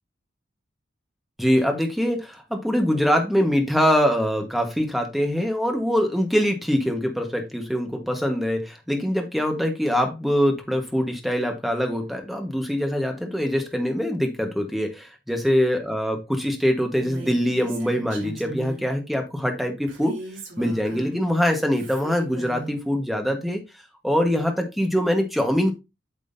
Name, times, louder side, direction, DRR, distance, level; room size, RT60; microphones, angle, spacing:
voice 1, 1.4-20.2 20.6-23.6 24.0-25.7, equal, ahead, 1.3 m, -23 dB
Female speech woman speaking, 16.9-18.9 19.9-21.3 21.7-22.7, right 2 dB, 80° right, 3.2 m, -38 dB
8.8 x 6.2 x 2.7 m
head